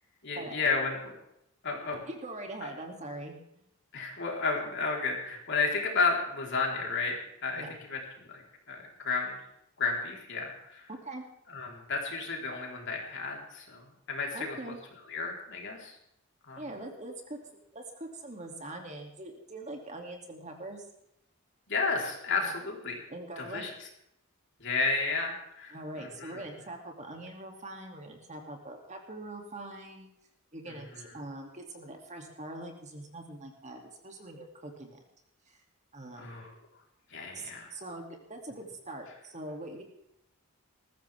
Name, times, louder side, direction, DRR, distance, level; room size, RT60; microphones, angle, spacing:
voice 1, 0.2-1.1 1.6-2.0 2.6-2.7 3.9-7.2 7.4-7.6 7.9-8.0 8.3-8.4 8.7-9.4 9.8-10.9 11.5-14.6 15.1-15.9 16.5-16.6 21.7-23.0 23.4-23.7 24.6-26.4 36.1-36.5 37.1-37.7, left 4 dB, 55° left, 0 dB, 4.0 m, -32 dB
voice 2, 2.1-3.6 7.5-7.8 10.9-11.2 14.3-14.8 16.6-17.4 17.7-20.8 22.4-22.5 23.1-23.7 25.7-30.1 30.5-35.0 35.5-35.6 35.9-36.4 37.3-39.8, right 1 dB, 35° right, 2 dB, 2.6 m, -43 dB
20.0 x 14.5 x 3.5 m, 0.79 s
head